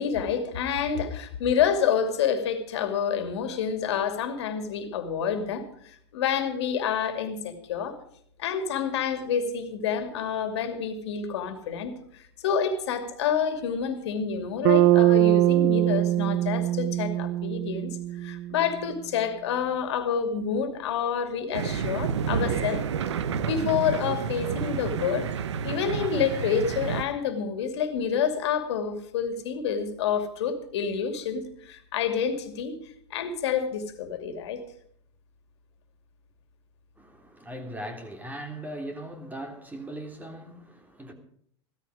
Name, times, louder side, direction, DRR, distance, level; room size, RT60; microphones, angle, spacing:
voice 1, 0.0-8.0 8.4-17.9 18.2-22.8 23.4-25.3 25.6-32.7 33.1-34.6, left 7 dB, 75° left, 2.6 m, -28 dB
Bass guitar, 14.6-18.7, right 14 dB, 55° right, 1.0 m, -22 dB
sound 1, 21.5-27.0, right 7 dB, 85° right, 1.1 m, -29 dB
voice 2, 37.0-41.1, right 1 dB, 10° right, 3.4 m, -39 dB
16.0 x 14.0 x 5.0 m
hypercardioid pair, 95°, 14 cm